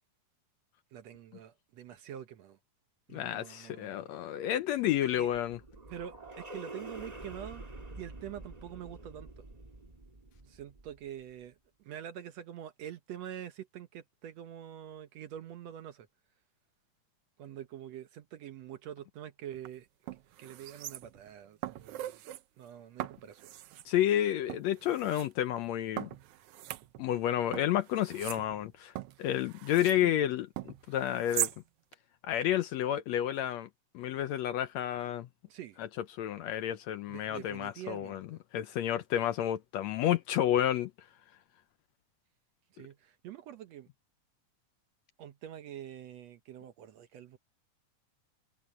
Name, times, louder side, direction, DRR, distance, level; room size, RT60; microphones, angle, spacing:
voice 1, 0.9-2.6 3.1-4.3 5.0-5.3 5.9-7.7 7.9-9.5 10.5-16.1 17.4-19.9 20.4-22.2 22.6-23.5 30.0-30.4 35.5-35.8 37.1-38.4 42.7-43.9 45.2-47.4, right 10 dB, 65° right, 1.9 m, -46 dB
voice 2, 3.1-5.6 23.9-26.1 27.0-28.9 29.2-31.5 32.2-33.7 33.9-35.3 35.8-35.9 36.2-38.2 38.5-40.9, left 11 dB, 75° left, 1.7 m, -30 dB
sound 1, 4.7-11.2, right 2 dB, 15° right, 2.1 m, -48 dB
sound 2, 19.5-19.7 20.1-21.3 21.6-22.4 23.0-23.9 24.5-25.3 26.0-27.2 27.5-30.0 30.6-31.6 31.9-32.0, right 14 dB, 85° right, 1.3 m, -40 dB
omnidirectional pair, 3.6 m